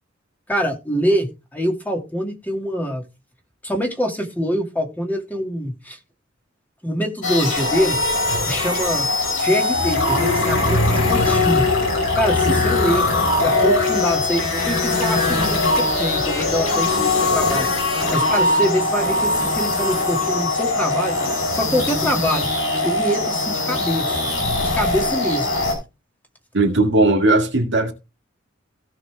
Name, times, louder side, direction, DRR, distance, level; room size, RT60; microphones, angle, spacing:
voice 1, 0.5-3.0 3.6-6.0 6.8-8.0 8.5-9.1 9.4-11.7 12.2-13.1 13.4-17.7 18.1-21.1 21.6-22.5 22.8-24.1 24.7-25.5, equal, 10° left, 2.1 m, -24 dB
sound 1, 7.2-25.8, left 2 dB, 75° left, 5.3 m, -21 dB
voice 2, 26.5-27.9, right 2 dB, 65° right, 2.0 m, -18 dB
16.5 x 5.6 x 3.4 m
head